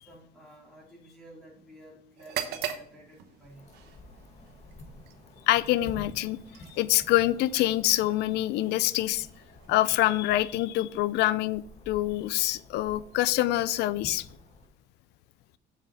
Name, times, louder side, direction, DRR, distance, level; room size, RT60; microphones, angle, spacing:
voice 1, 0.0-3.7, right 1 dB, ahead, -5 dB, 2.9 m, -52 dB
sound 1, 2.2-10.0, right 9 dB, 85° right, 1.0 m, -42 dB
sound 2, 3.5-14.7, left 1 dB, 40° left, 1.8 m, -50 dB
voice 2, 5.5-6.4 6.7-9.3 9.7-14.3, left 15 dB, 80° left, 17 dB, 0.5 m, -25 dB
7.6 x 6.5 x 4.2 m, 0.63 s
cardioid pair, 110°, 17 cm